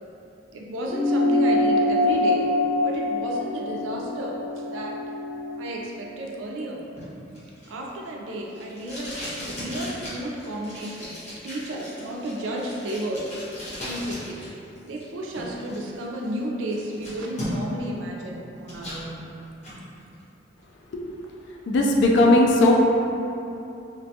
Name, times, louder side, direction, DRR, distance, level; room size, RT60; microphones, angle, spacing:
voice 1, 0.5-2.5 2.8-5.0 5.6-6.9 7.7-13.4 13.8-14.5 14.9-19.2, right 1 dB, 90° right, -1 dB, 0.4 m, -32 dB
sound 1, 0.9-5.7, left 1 dB, 10° right, 0.7 m, -24 dB
Packing tape duct tape, 7.0-14.5 14.8-15.8 16.2-16.3 16.7-17.8 18.2-19.0 19.4-19.8, equal, 40° left, 0.8 m, -37 dB
voice 2, 21.7-22.7, left 1 dB, 65° left, 0 dB, 0.3 m, -17 dB
2.5 x 2.2 x 2.7 m, 2.8 s
head